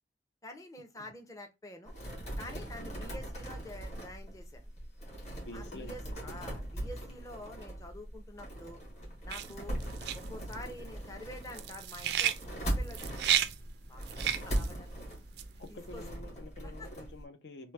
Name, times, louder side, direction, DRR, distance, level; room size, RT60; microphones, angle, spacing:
voice 1, 0.4-1.9 2.4-4.6 5.5-8.8 9.2-9.8 10.1-13.3 13.9-14.1 14.4-15.0 15.7-16.0 16.6-16.9, left 1 dB, 20° left, 0.6 m, -47 dB
sound 1, 1.9-17.2, right 1 dB, 40° left, 1.2 m, -40 dB
voice 2, 5.4-6.1 15.6-17.7, left 2 dB, 70° left, 0.6 m, -48 dB
sound 2, 9.3-15.8, right 10 dB, 65° right, 0.3 m, -33 dB
3.1 x 2.1 x 3.1 m
head